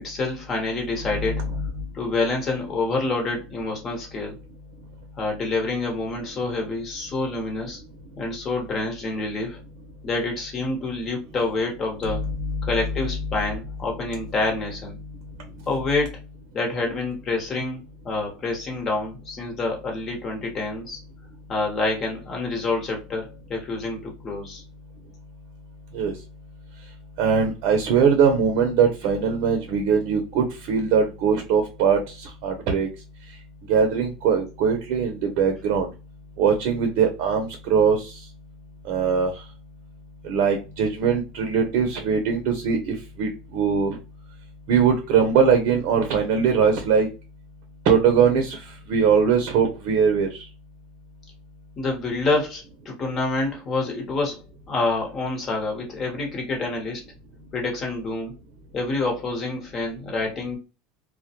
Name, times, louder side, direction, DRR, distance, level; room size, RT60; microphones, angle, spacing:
voice 1, 0.0-1.4 1.9-4.4 5.2-7.8 8.2-9.6 10.0-12.3 12.6-15.0 15.7-16.2 16.5-21.0 21.5-24.6 51.8-57.0 57.5-58.3 58.7-60.6, left 3 dB, 40° left, 1.1 m, -27 dB
voice 2, 27.2-32.0 32.4-32.9 33.7-35.9 36.4-38.1 38.9-39.3 40.2-44.0 44.7-47.1 47.8-48.6 48.9-50.4, right 6 dB, 65° right, 0.5 m, -21 dB
2.2 x 2.1 x 2.8 m
supercardioid pair, 100°, 0 cm